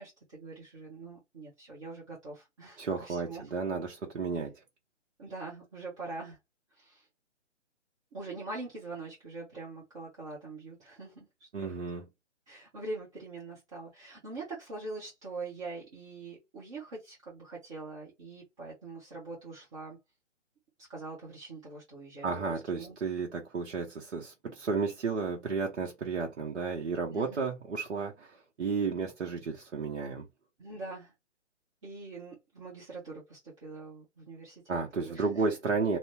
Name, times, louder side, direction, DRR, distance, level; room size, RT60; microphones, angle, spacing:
voice 1, 0.0-3.5 5.2-6.4 6.7-7.1 8.1-11.8 12.5-20.0 20.9-23.0 27.1-27.4 30.6-31.1 31.8-35.4, right 3 dB, 25° right, 1.0 m, -43 dB
voice 2, 2.8-4.6 11.5-12.1 22.2-30.3 34.7-36.0, right 4 dB, 65° right, 0.8 m, -33 dB
2.6 x 2.1 x 3.3 m
figure-of-eight pair, 145°, 37 cm